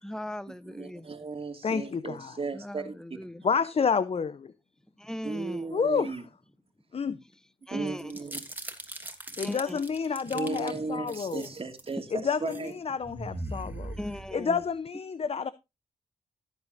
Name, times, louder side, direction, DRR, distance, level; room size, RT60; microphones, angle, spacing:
voice 1, 0.0-1.1 2.5-3.4 5.0-5.7 7.7-8.1 8.9-9.8 10.5-10.9 13.9-14.6, left 1 dB, 5° left, 1.1 m, -39 dB
voice 2, 0.7-2.9 5.2-6.2 7.7-8.4 10.3-12.7, right 4 dB, 45° right, 2.5 m, -35 dB
voice 3, 1.6-2.4 3.4-4.5 5.7-6.2 6.9-7.2 9.4-11.5 12.1-14.0 14.3-15.5, left 6 dB, 50° left, 0.7 m, -29 dB
sound 1, 8.0-10.7 11.1-11.9 12.3-12.7 13.0-14.6, right 1 dB, 15° right, 2.9 m, -40 dB
17.0 x 8.3 x 2.6 m
cardioid pair, 60°, 14 cm